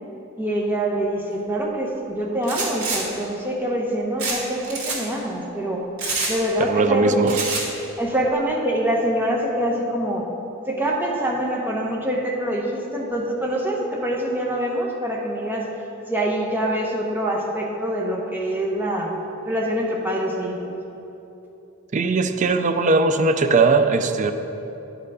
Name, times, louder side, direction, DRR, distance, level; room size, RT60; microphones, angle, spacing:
voice 1, 0.4-5.9 6.3-7.4 8.0-10.3 10.7-15.7 16.1-19.1 19.4-20.8, right 1 dB, 10° right, -2 dB, 0.9 m, -25 dB
sound 1, 2.4-3.0 4.2-4.4 4.6-5.0 6.0-6.3 7.3-7.7, right 3 dB, 75° right, 2.0 m, -26 dB
voice 2, 6.6-7.5 21.9-24.3, right 3 dB, 35° right, 8 dB, 0.4 m, -19 dB
10.0 x 4.7 x 4.9 m, 3.0 s
head